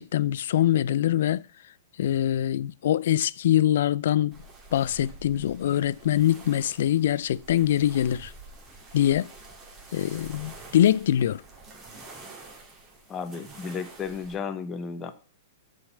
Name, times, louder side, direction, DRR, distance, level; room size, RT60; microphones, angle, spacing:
voice 1, 0.0-1.4 2.0-4.4 4.7-8.3 8.9-9.3 9.9-11.4, left 11 dB, 65° left, 0.3 m, -23 dB
sound 1, 4.3-14.4, right 3 dB, 25° right, 2.4 m, -47 dB
voice 2, 13.1-15.1, left 6 dB, 25° left, 1.0 m, -33 dB
7.0 x 5.1 x 5.4 m
hypercardioid pair, 115°, 0 cm